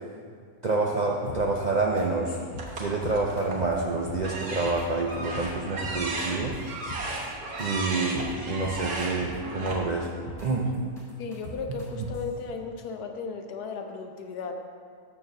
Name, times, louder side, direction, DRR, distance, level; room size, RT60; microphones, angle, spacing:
voice 1, 0.6-2.4 2.8-6.6 7.0-7.3 7.6-10.1 10.4-10.7, right 3 dB, 65° right, -1 dB, 0.4 m, -28 dB
sound 1, 1.3-1.6 2.0-2.1 2.3-2.7 3.0-3.7 4.1-4.8 5.1-5.5 5.8-7.3 7.6-7.7 7.9-8.3 8.6-9.4 9.7-10.5 10.7-12.3, equal, 25° left, 2.2 m, -40 dB
sound 2, 2.6-3.7 4.2-9.7, right 2 dB, 90° right, 1.7 m, -35 dB
voice 2, 11.2-14.5, left 5 dB, 90° left, 5 dB, 1.3 m, -35 dB
7.6 x 4.5 x 6.6 m, 2.1 s
omnidirectional pair, 1.6 m